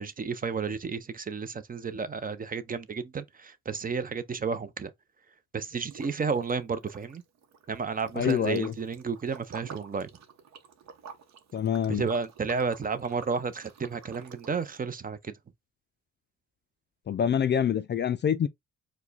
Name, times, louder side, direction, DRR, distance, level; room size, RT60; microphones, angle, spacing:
voice 1, 0.0-4.9 5.5-7.2 7.7-10.1 11.9-15.3, right 5 dB, 30° right, 0.6 m, -32 dB
Liquid, 5.9-6.6 6.8-14.8, right 6 dB, 60° right, 0.9 m, -49 dB
voice 2, 8.1-8.7 11.5-12.0 17.1-18.5, left 8 dB, 35° left, 0.4 m, -26 dB
4.7 x 2.3 x 4.0 m
cardioid pair, 90°, 30 cm